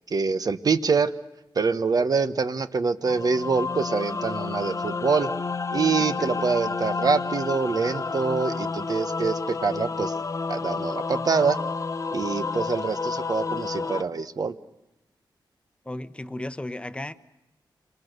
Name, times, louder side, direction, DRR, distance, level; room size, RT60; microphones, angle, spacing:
voice 1, 0.1-1.1 1.5-5.3 5.7-10.1 10.5-11.6 12.1-14.6, right 4 dB, 50° right, 1.2 m, -25 dB
sound 1, 3.0-14.0, left 4 dB, 40° left, 1.1 m, -30 dB
voice 2, 15.8-17.1, left 1 dB, 15° left, 1.0 m, -34 dB
28.0 x 26.5 x 6.7 m
wide cardioid pair, 130°, 8 cm